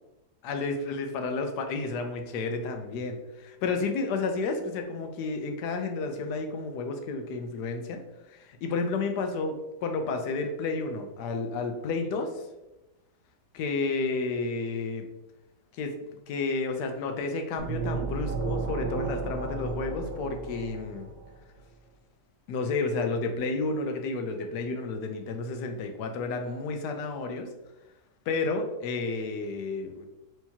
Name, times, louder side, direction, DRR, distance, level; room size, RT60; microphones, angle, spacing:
voice 1, 0.4-8.0 8.3-12.4 13.5-15.1 15.7-21.1 22.5-27.5 28.3-30.1, left 3 dB, 85° left, 5 dB, 1.2 m, -31 dB
sound 1, 17.6-21.3, right 4 dB, 65° right, 1.0 m, -33 dB
4.6 x 3.3 x 2.8 m, 0.97 s
omnidirectional pair, 1.7 m